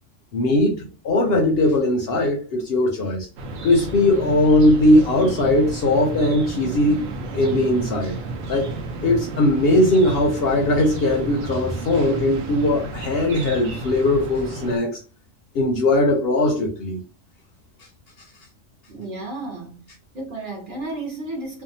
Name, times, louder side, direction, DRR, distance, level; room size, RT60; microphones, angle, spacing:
voice 1, 0.3-3.3 3.6-8.2 8.5-8.7 9.0-15.0 15.5-17.0, left 1 dB, 65° left, 0.6 m, -19 dB
sound 1, 3.4-14.8, right 2 dB, 85° right, 1.0 m, -32 dB
voice 2, 18.9-19.8 20.1-21.6, right 2 dB, 45° right, 0.9 m, -32 dB
2.6 x 2.2 x 2.6 m
omnidirectional pair, 1.3 m